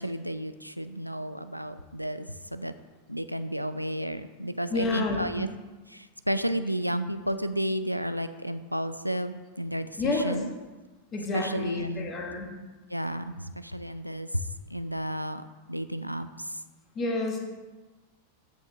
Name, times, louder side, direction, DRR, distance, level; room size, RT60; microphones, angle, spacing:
voice 1, 0.0-2.7 3.1-5.5 5.9-10.5 11.3-12.1 12.9-14.4 14.7-16.6, equal, 90° right, 11 dB, 0.4 m, -32 dB
voice 2, 4.7-5.3 10.0-10.4 11.1-12.5 17.0-17.4, left 3 dB, 25° left, 1 dB, 1.8 m, -29 dB
14.0 x 5.6 x 3.4 m, 1.2 s
figure-of-eight pair, 90°, 0 cm